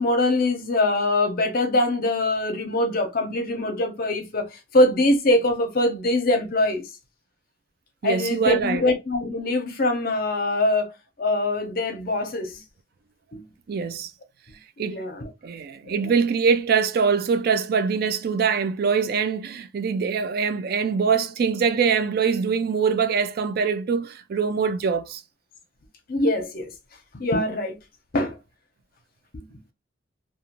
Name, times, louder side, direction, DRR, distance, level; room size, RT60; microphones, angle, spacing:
voice 1, 0.0-6.8 8.0-10.9 11.2-12.6 13.3-13.5 14.8-15.3 15.8-16.1 26.1-26.7 27.1-27.8 28.1-28.4 29.3-29.6, left 1 dB, 50° left, 0.7 m, -23 dB
voice 2, 8.0-8.8 13.7-14.1 14.8-15.0 15.4-25.2, right 6 dB, 55° right, 0.3 m, -23 dB
2.5 x 2.3 x 2.9 m
head